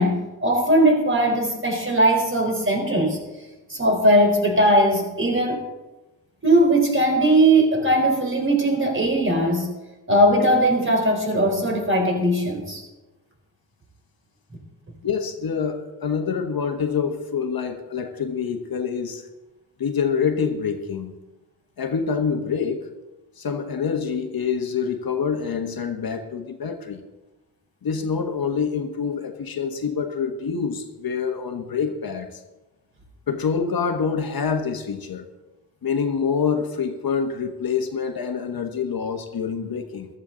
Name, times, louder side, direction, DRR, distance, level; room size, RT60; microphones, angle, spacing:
voice 1, 0.0-3.2 3.7-5.7 6.4-9.7 10.1-12.8, right 1 dB, 30° right, 2 dB, 3.9 m, -19 dB
voice 2, 15.0-19.2 19.8-21.2 21.8-22.9 23.4-27.0 27.8-32.3 33.3-35.3 35.8-40.1, left 6 dB, 60° left, 7 dB, 1.3 m, -26 dB
14.5 x 13.5 x 3.9 m, 1.1 s
cardioid pair, 85°, 40 cm